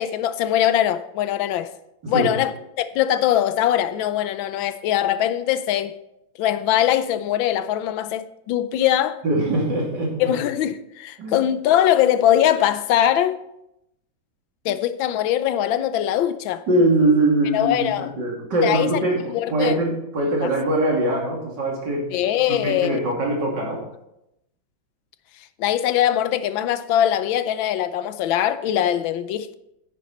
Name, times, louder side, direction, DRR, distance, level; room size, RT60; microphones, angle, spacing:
voice 1, 0.0-1.7 2.1-5.9 6.4-9.2 10.2-13.4 14.6-16.6 17.5-18.1 18.6-19.0 19.3-19.8 20.4-20.5 22.1-23.0 25.6-29.5, left 11 dB, 90° left, 1.4 m, -21 dB
voice 2, 9.2-10.3 11.2-11.5 16.7-19.2 19.5-22.1 22.6-23.8, right 1 dB, 65° right, 3.3 m, -22 dB
10.0 x 9.2 x 4.2 m
omnidirectional pair, 2.1 m